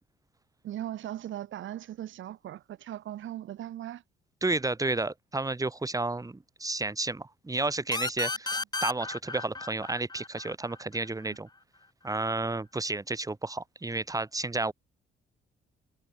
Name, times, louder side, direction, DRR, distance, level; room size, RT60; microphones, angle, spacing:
voice 1, 0.6-4.0, right 12 dB, 75° right, 4.8 m, -38 dB
voice 2, 4.4-11.5 12.0-14.7, right 2 dB, 15° right, 3.0 m, -31 dB
sound 1, 7.9-11.3, left 3 dB, 20° left, 2.7 m, -34 dB
cardioid pair, 90°, 20 cm